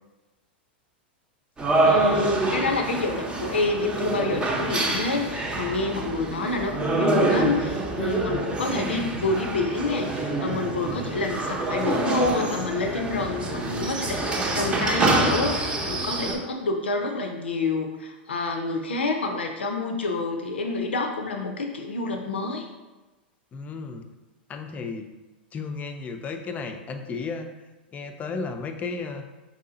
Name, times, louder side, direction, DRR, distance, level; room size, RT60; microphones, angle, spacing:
sound 1, 1.6-16.3, right 2 dB, 15° right, 0.8 m, -26 dB
voice 1, 1.8-22.7, left 3 dB, 85° left, 4 dB, 0.6 m, -28 dB
voice 2, 23.5-24.0 24.5-25.1 25.5-27.5 27.9-29.3, left 4 dB, 25° left, 5 dB, 0.5 m, -33 dB
4.7 x 2.8 x 3.8 m, 1.1 s
hypercardioid pair, 100°, 6 cm